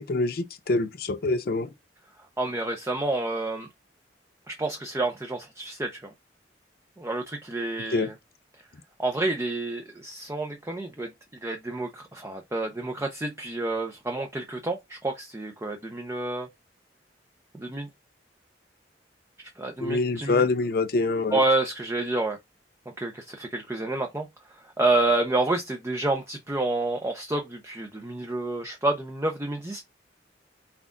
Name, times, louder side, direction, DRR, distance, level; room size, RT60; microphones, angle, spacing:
voice 1, 0.0-1.7 7.9-8.1 19.8-21.4, left 3 dB, 55° left, 0.5 m, -25 dB
voice 2, 2.4-3.7 4.5-6.1 7.0-8.1 9.0-11.1 11.4-16.5 17.5-17.9 19.6-20.4 21.3-22.4 23.0-29.8, right 2 dB, 15° right, 0.6 m, -29 dB
5.9 x 2.4 x 3.7 m
head